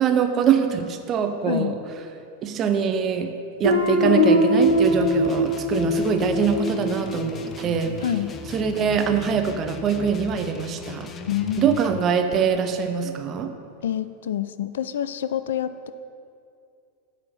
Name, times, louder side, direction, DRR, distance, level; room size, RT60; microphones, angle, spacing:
voice 1, 0.0-1.7 2.4-8.0 8.5-11.1 11.6-13.5, right 7 dB, 30° right, 7 dB, 0.7 m, -23 dB
Guitar, 3.6-8.3, equal, 85° right, 1.4 m, -22 dB
sound 1, 4.6-12.0, left 4 dB, 25° left, 0.6 m, -38 dB
voice 2, 11.3-11.7 13.8-15.9, left 10 dB, 60° left, 13 dB, 0.3 m, -27 dB
9.4 x 4.3 x 7.3 m, 2.5 s
figure-of-eight pair, 90°, 0 cm